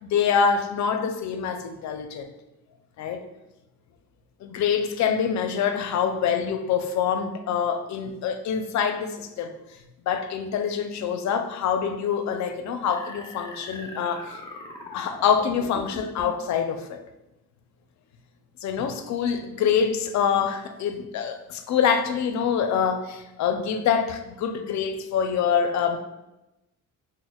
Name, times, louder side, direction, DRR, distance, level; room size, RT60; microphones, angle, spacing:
voice 1, 0.0-2.3 3.0-3.2 4.4-9.5 10.1-14.3 14.9-17.0 18.6-26.0, left 7 dB, 65° left, 7 dB, 0.5 m, -25 dB
sound 1, 12.9-16.4, left 2 dB, 15° left, 0.6 m, -41 dB
6.0 x 2.1 x 2.2 m, 0.94 s
cardioid pair, 90°, 30 cm